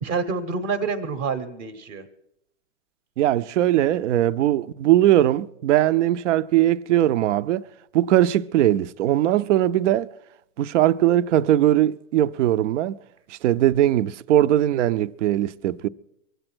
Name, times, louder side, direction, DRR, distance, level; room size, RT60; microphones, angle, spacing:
voice 1, 0.0-2.0, right 5 dB, 25° right, 0.9 m, -27 dB
voice 2, 3.2-7.7 7.9-10.1 10.6-12.9 13.3-15.9, right 13 dB, 60° right, 0.6 m, -20 dB
23.5 x 8.0 x 6.1 m
hypercardioid pair, 145°, 42 cm